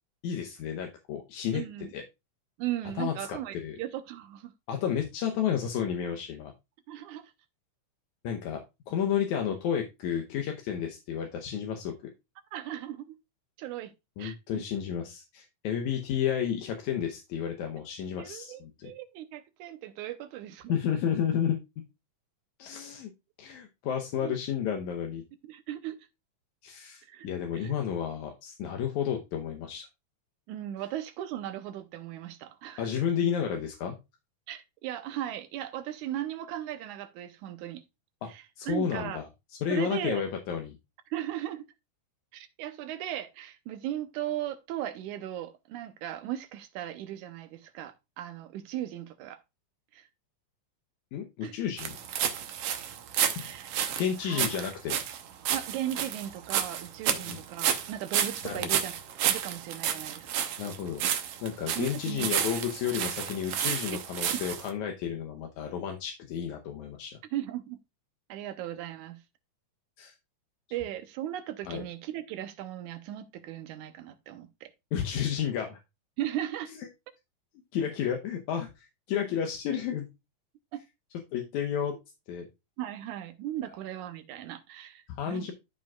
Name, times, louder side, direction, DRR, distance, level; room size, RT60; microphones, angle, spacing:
voice 1, 0.2-1.6 1.9-2.0 3.0-3.8 4.7-6.5 8.2-8.6 8.9-11.9 14.2-18.9 20.7-21.6 22.6-23.1 23.4-25.2 26.6-29.9 32.8-34.0 38.2-38.3 38.6-39.3 39.6-40.8 51.1-52.0 53.4-53.5 54.0-55.0 57.1-57.4 58.4-58.8 60.6-61.0 61.4-67.1 70.0-70.1 71.7-71.8 74.9-75.8 77.7-80.1 81.3-82.0 82.3-82.5 85.1-85.5, left 8 dB, 80° left, 2.2 m, -31 dB
voice 2, 1.5-1.9 2.6-4.5 6.9-7.3 12.5-13.2 13.6-13.9 14.2-14.6 18.2-20.7 24.2-24.3 25.4-26.0 27.1-27.3 27.5-27.7 30.5-32.9 34.5-37.8 38.3-39.2 39.7-40.2 41.1-41.7 42.3-49.4 49.9-50.1 51.4-51.6 53.4-53.8 54.2-54.5 55.5-58.9 59.3-60.5 61.7-62.3 67.3-67.8 68.3-69.2 70.7-74.7 76.2-76.7 80.7-80.8 82.8-85.5, right 12 dB, 85° right, 2.2 m, -37 dB
sound 1, 51.8-64.7, right 9 dB, 65° right, 1.6 m, -31 dB
13.0 x 5.1 x 2.3 m
omnidirectional pair, 3.4 m